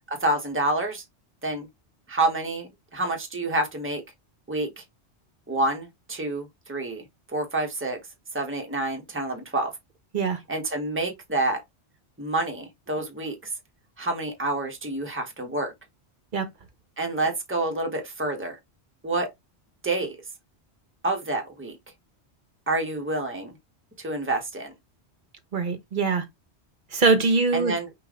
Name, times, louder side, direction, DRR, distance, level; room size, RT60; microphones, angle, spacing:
voice 1, 0.1-1.0 1.4-1.7 2.1-4.0 4.5-4.8 5.5-7.0 7.3-8.0 8.3-9.7 10.5-11.6 12.2-13.5 14.0-15.7 17.0-18.6 19.0-19.3 19.8-20.2 21.0-21.8 22.7-23.5 24.0-24.7 27.5-27.9, right 2 dB, 10° right, 1.1 m, -28 dB
voice 2, 25.5-26.2 26.9-27.8, right 4 dB, 50° right, 1.0 m, -22 dB
5.5 x 2.6 x 3.6 m
omnidirectional pair, 1.1 m